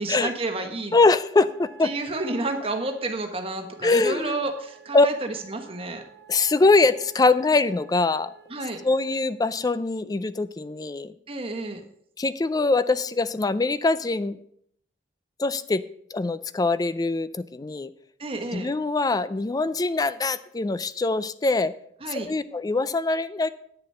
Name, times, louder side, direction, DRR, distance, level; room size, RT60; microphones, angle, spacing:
voice 1, 0.0-1.0 1.8-6.0 8.5-8.8 11.3-11.8 18.2-18.7 22.0-22.3, right 2 dB, 35° right, 5 dB, 1.2 m, -30 dB
voice 2, 0.9-1.9 3.8-4.4 4.9-5.1 6.3-8.3 8.8-11.1 12.2-14.4 15.4-15.8 16.1-17.9 18.5-21.7 22.1-23.5, left 3 dB, 20° left, 15 dB, 0.4 m, -23 dB
sound 1, 1.3-9.3, right 7 dB, 65° right, 1.3 m, -50 dB
9.3 x 6.7 x 5.5 m, 0.68 s
head